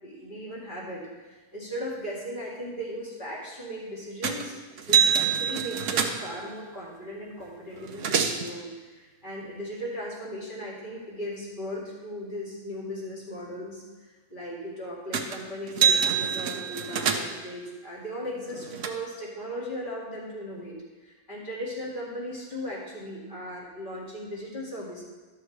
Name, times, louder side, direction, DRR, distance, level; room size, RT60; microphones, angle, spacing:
voice 1, 0.0-8.7 9.0-13.8 14.3-25.0, equal, 30° left, -6 dB, 2.3 m, -37 dB
sound 1, 4.2-4.5 4.8-6.4 7.4-7.5 7.7-8.5 15.1-15.4 15.7-17.5 18.2-18.9, right 7 dB, 60° right, 0.8 m, -25 dB
12.5 x 6.5 x 3.3 m, 1.3 s
omnidirectional pair, 1.8 m